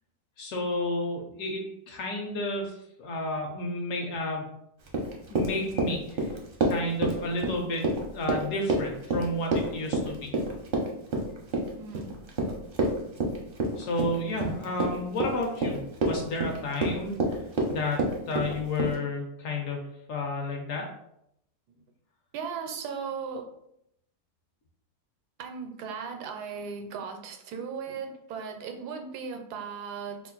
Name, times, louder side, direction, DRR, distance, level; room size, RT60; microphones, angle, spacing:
voice 1, 0.4-2.7 3.0-4.4 5.3-6.0 6.6-7.9 8.1-10.3 13.8-17.2 17.7-19.8 20.1-20.8, left 2 dB, 65° left, 2 dB, 0.9 m, -31 dB
Run, 4.9-18.9, right 2 dB, 55° right, 0.6 m, -28 dB
voice 2, 11.8-12.3 22.3-23.5 25.4-30.2, right 6 dB, 90° right, 5 dB, 1.1 m, -37 dB
2.8 x 2.4 x 3.8 m, 0.77 s
omnidirectional pair, 1.7 m